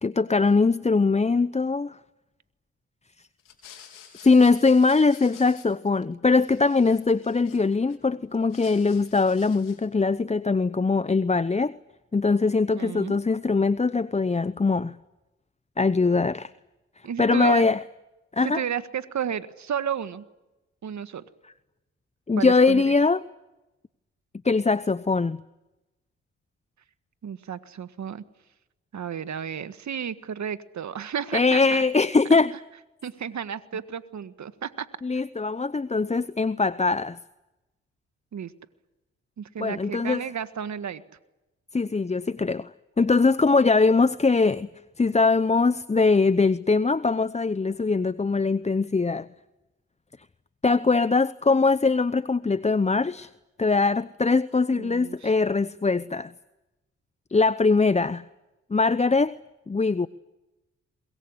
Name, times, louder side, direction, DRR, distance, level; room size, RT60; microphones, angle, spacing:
voice 1, 0.0-2.0 4.2-11.7 12.1-15.0 15.8-16.5 17.2-17.8 18.3-18.6 22.3-23.2 24.4-25.4 31.3-32.5 35.0-37.2 39.6-40.2 41.7-42.7 43.0-44.7 45.0-49.3 50.6-53.3 53.6-56.3 57.3-58.2 58.7-59.3 59.7-60.1, left 4 dB, 20° left, 0.8 m, -22 dB
sound 1, 3.4-6.0 6.3-8.0 8.3-9.9, left 9 dB, 85° left, 3.9 m, -50 dB
voice 2, 12.7-13.2 17.0-17.7 18.4-20.2 20.8-21.2 22.4-22.9 27.2-28.2 28.9-31.8 33.0-34.9 38.3-38.5 39.4-41.0 54.7-55.3, right 8 dB, 60° right, 1.7 m, -32 dB
22.5 x 22.0 x 9.9 m
supercardioid pair, 45°, 32 cm